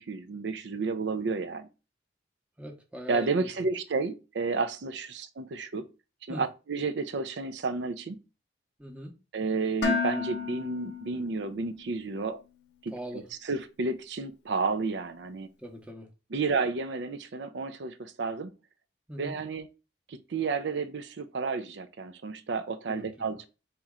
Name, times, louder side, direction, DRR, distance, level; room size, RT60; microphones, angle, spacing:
voice 1, 0.0-1.7 3.1-5.9 6.3-8.2 9.3-12.4 12.8-12.9 13.5-15.5 16.3-18.5 19.2-19.7 20.1-23.4, right 4 dB, 75° right, 0.5 m, -31 dB
voice 2, 2.6-3.5 6.3-6.4 8.8-9.2 12.9-13.3 15.6-16.1 19.1-19.4 22.9-23.3, equal, 5° right, 0.7 m, -41 dB
Dishes pots and pans, 9.8-11.9, left 5 dB, 70° left, 0.6 m, -32 dB
4.2 x 3.0 x 3.6 m
head